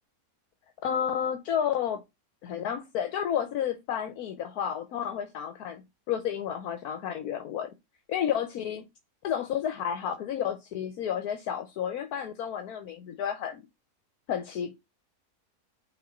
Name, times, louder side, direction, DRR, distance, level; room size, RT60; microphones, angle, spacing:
voice 1, 0.8-2.0 2.4-7.7 8.1-8.8 9.2-13.6 14.3-14.8, left 9 dB, 75° left, 1.3 m, -31 dB
5.6 x 3.6 x 5.1 m
omnidirectional pair, 1.6 m